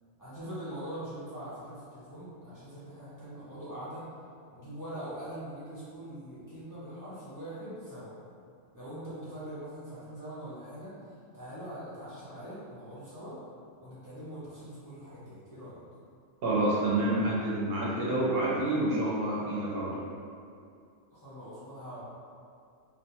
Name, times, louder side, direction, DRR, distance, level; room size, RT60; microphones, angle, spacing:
voice 1, 0.2-4.0 4.5-8.1 8.7-11.0 11.3-13.4 13.8-15.8 21.1-22.0, right 1 dB, 30° left, -12 dB, 0.4 m, -42 dB
voice 2, 16.4-20.0, right 1 dB, 60° right, -6 dB, 0.7 m, -28 dB
2.4 x 2.2 x 2.9 m, 2.3 s
omnidirectional pair, 1.3 m